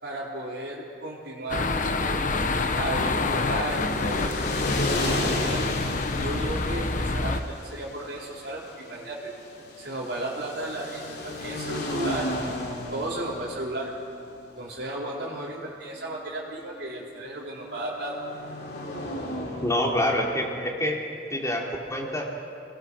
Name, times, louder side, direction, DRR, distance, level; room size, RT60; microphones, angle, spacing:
voice 1, 0.0-2.2 2.7-4.4 4.8-5.6 6.1-9.3 9.8-12.3 12.9-13.9 14.6-18.2, right 1 dB, 65° right, -8 dB, 4.6 m, -34 dB
sound 1, 1.5-7.4, left 3 dB, 45° left, 1.2 m, -27 dB
sound 2, 2.8-20.6, left 1 dB, 65° left, 4.3 m, -35 dB
voice 2, 19.6-21.0 21.3-21.6 21.9-22.3, left 1 dB, 20° left, -1 dB, 3.7 m, -26 dB
29.5 x 21.0 x 6.4 m, 2.3 s
head